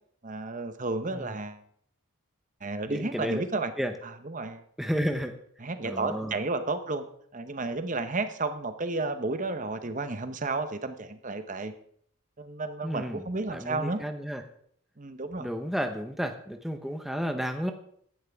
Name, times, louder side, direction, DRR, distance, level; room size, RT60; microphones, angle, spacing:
voice 1, 0.2-1.6 2.6-3.7 4.0-4.6 5.6-7.0 7.3-11.7 12.4-14.0 15.0-15.5, right 3 dB, 35° right, 9 dB, 0.9 m, -32 dB
voice 2, 2.9-3.4 3.8-3.9 4.8-5.3 5.8-6.3 12.8-13.2 13.5-14.4 15.4-17.7, equal, ahead, 5 dB, 0.8 m, -32 dB
15.0 x 11.0 x 3.5 m, 0.64 s
head